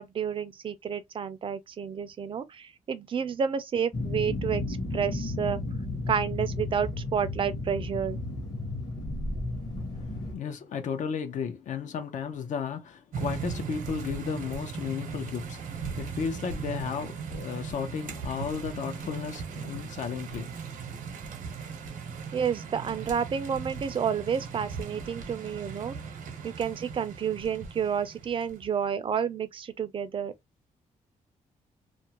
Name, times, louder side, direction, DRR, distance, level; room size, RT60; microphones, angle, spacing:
voice 1, 0.0-5.6 6.1-8.2 22.3-26.0 26.4-30.3, right 7 dB, 40° right, 0.4 m, -30 dB
sound 1, 3.9-10.3, left 2 dB, 30° left, 0.8 m, -33 dB
voice 2, 10.0-20.5, left 6 dB, 65° left, 0.6 m, -34 dB
sound 2, 13.1-28.7, right 5 dB, 85° right, 0.8 m, -38 dB
2.5 x 2.1 x 2.8 m
cardioid pair, 130°, 14 cm